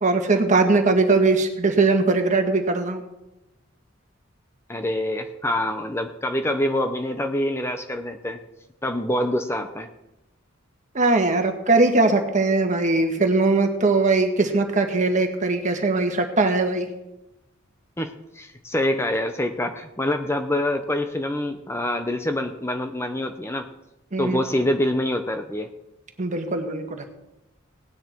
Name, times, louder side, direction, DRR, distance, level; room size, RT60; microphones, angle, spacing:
voice 1, 0.0-3.0 10.9-16.9 24.1-24.4 26.2-27.1, right 3 dB, 35° right, 4 dB, 1.6 m, -20 dB
voice 2, 4.7-8.4 8.8-9.9 18.0-23.7 24.2-25.7, left 1 dB, 10° left, 7 dB, 0.7 m, -25 dB
18.0 x 9.7 x 4.5 m, 0.94 s
head